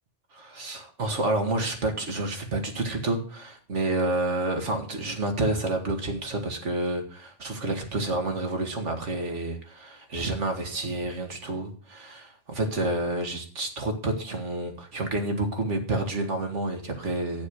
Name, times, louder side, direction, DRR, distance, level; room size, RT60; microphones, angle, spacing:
voice 1, 0.3-17.5, right 2 dB, 90° right, 4 dB, 2.3 m, -29 dB
9.8 x 7.0 x 6.4 m, 0.42 s
omnidirectional pair, 1.2 m